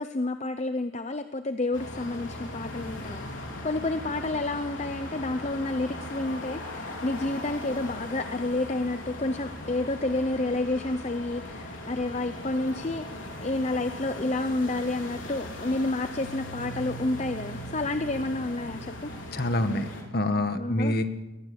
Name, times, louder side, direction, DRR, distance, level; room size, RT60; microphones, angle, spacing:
voice 1, 0.0-19.1 20.6-21.0, left 2 dB, 35° left, 10 dB, 0.7 m, -30 dB
sound 1, 1.7-20.0, left 1 dB, 65° left, 4.7 m, -39 dB
voice 2, 19.3-21.0, left 1 dB, 50° left, 8 dB, 1.6 m, -26 dB
21.5 x 17.5 x 7.0 m, 1.1 s
head